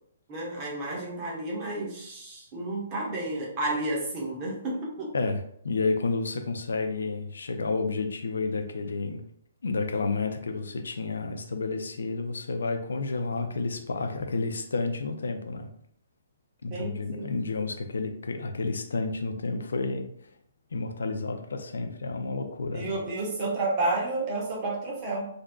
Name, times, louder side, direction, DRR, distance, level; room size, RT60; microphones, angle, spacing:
voice 1, 0.3-5.1 16.7-17.3 22.7-25.2, right 2 dB, 30° right, -4 dB, 1.1 m, -31 dB
voice 2, 5.1-9.2 9.6-15.7 16.6-20.1 20.7-22.9, left 3 dB, 65° left, 5 dB, 0.5 m, -30 dB
3.8 x 2.6 x 2.3 m, 0.69 s
figure-of-eight pair, 125°, 0 cm